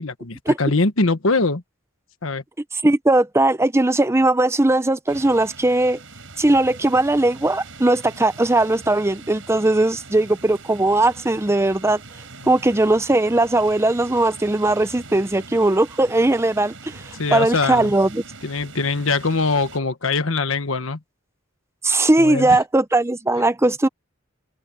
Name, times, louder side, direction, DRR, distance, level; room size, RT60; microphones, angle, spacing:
voice 1, 0.0-1.6 2.2-2.4 17.2-17.9 18.4-21.0 22.2-22.6, left 3 dB, 75° left, 1.4 m, -22 dB
voice 2, 2.8-6.0 6.4-12.0 12.5-18.2 21.8-23.9, right 2 dB, 15° right, 0.7 m, -19 dB
sound 1, 5.1-19.8, right 3 dB, 65° right, 7.7 m, -42 dB
open air
head